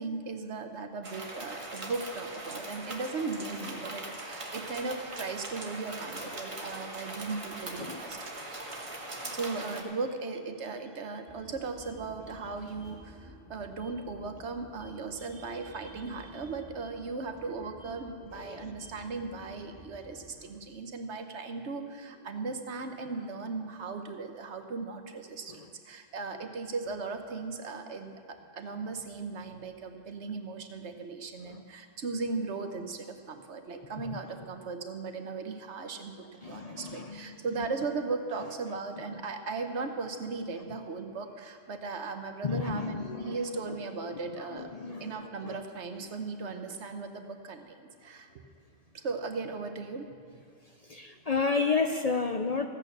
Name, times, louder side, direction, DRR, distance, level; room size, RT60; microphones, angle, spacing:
voice 1, 0.0-8.2 8.4-8.7 9.1-44.7 45.0-48.4 48.9-50.1, right 4 dB, 75° right, 6 dB, 1.3 m, -37 dB
sound 1, 1.0-9.8, right 2 dB, 30° right, 1.2 m, -41 dB
sound 2, 11.3-20.3, left 2 dB, 90° left, 2.5 m, -52 dB
voice 2, 18.3-18.7 31.4-31.6 34.0-34.2 36.4-37.4 39.1-39.2 42.4-43.8 44.4-45.5 50.7-52.7, left 4 dB, 45° left, 5 dB, 0.5 m, -32 dB
15.0 x 8.7 x 6.6 m, 2.1 s
omnidirectional pair, 1.2 m